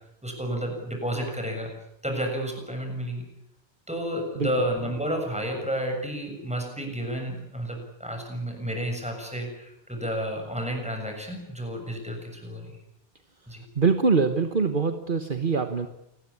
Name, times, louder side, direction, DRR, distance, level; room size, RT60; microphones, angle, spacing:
voice 1, 0.2-1.7 2.0-3.3 3.9-12.8 13.5-13.6, equal, 5° right, 3 dB, 7.0 m, -31 dB
voice 2, 13.7-15.9, right 5 dB, 50° right, 7 dB, 1.5 m, -23 dB
28.0 x 20.0 x 8.6 m, 0.80 s
omnidirectional pair, 1.2 m